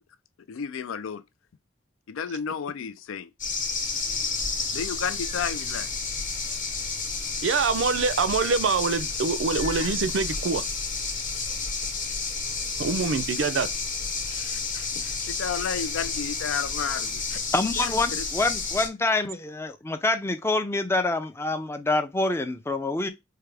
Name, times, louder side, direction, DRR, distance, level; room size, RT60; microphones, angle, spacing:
voice 1, 0.5-1.2 2.1-3.3 4.7-5.9 14.3-17.4 17.8-18.2, left 7 dB, 85° left, 0.4 m, -32 dB
Dusk Atmos with Cicadas, 3.4-18.9, left 4 dB, 40° left, 1.0 m, -31 dB
voice 2, 7.4-10.6 12.8-13.7, right 5 dB, 65° right, 0.4 m, -25 dB
voice 3, 17.5-23.1, left 2 dB, 15° left, 0.4 m, -26 dB
4.7 x 2.2 x 3.3 m
head